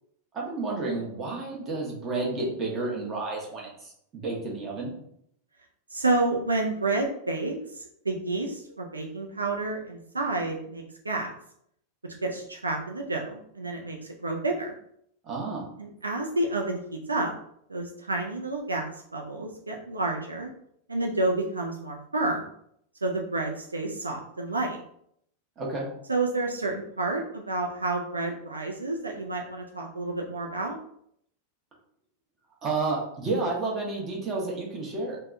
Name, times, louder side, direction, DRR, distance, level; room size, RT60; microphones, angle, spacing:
voice 1, 0.3-4.9 15.2-15.6 25.6-25.8 32.6-35.2, right 3 dB, 25° right, -3 dB, 0.9 m, -31 dB
voice 2, 5.9-11.3 12.2-14.7 15.8-17.3 17.7-20.5 20.9-22.5 23.0-24.8 26.1-30.8, right 2 dB, 80° right, 1 dB, 0.3 m, -30 dB
3.3 x 2.1 x 2.5 m, 0.70 s
figure-of-eight pair, 90°, 0 cm